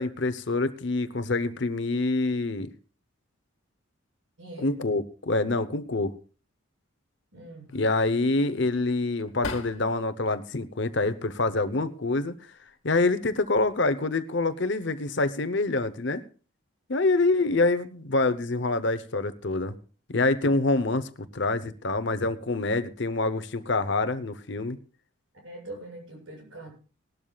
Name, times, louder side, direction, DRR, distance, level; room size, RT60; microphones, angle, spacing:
voice 1, 0.0-2.7 4.6-6.1 7.7-12.3 12.8-16.2 16.9-19.7 20.1-24.8, left 2 dB, 55° left, 11 dB, 0.9 m, -26 dB
voice 2, 4.4-4.8 5.8-5.9 7.3-7.7 25.4-26.7, right 2 dB, 75° right, 1 dB, 7.6 m, -43 dB
sound 1, 7.7-10.2 10.6-11.5 12.4-12.7 13.1-13.8, left 3 dB, 80° left, 1.8 m, -42 dB
19.5 x 12.5 x 2.4 m, 0.38 s
head